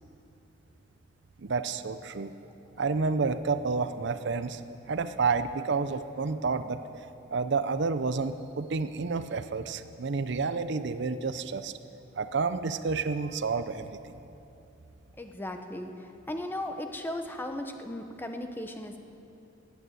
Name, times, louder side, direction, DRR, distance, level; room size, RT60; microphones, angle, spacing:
voice 1, 1.4-2.3 2.8-4.6 4.9-6.8 7.3-11.7 12.2-14.0, right 4 dB, 60° right, 11 dB, 0.6 m, -30 dB
voice 2, 15.2-19.0, left 1 dB, 10° left, 5 dB, 0.8 m, -36 dB
15.0 x 9.3 x 9.1 m, 2.8 s
head